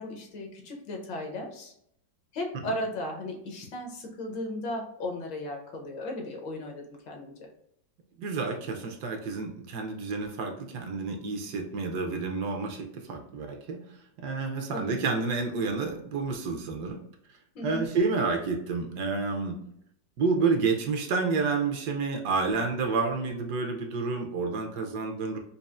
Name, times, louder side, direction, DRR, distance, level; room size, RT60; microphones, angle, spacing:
voice 1, 0.0-1.7 2.3-7.5 14.7-15.0 17.5-17.8, left 1 dB, 80° left, 1 dB, 1.6 m, -36 dB
voice 2, 8.2-13.8 14.2-17.0 17.6-19.6 20.2-25.4, right 4 dB, 70° right, 3 dB, 1.1 m, -29 dB
5.3 x 2.4 x 2.4 m, 0.72 s
omnidirectional pair, 2.0 m